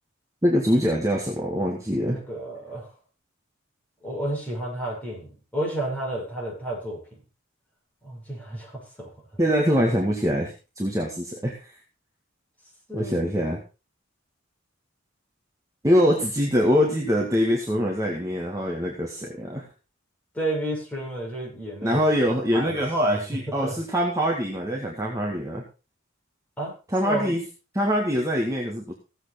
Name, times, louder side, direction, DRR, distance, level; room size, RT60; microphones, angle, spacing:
voice 1, 0.4-2.2 9.4-11.7 12.9-13.6 15.8-19.7 21.8-25.6 26.9-27.4 27.7-28.9, equal, 15° right, -1 dB, 2.0 m, -24 dB
voice 2, 2.1-2.9 4.0-7.2 8.0-9.1 12.9-13.2 20.3-22.0 22.5-22.8 23.0-23.2 23.5-23.7 26.6-26.7 27.0-27.3, right 1 dB, 5° left, -4 dB, 6.5 m, -31 dB
16.0 x 7.9 x 4.4 m, 0.32 s
head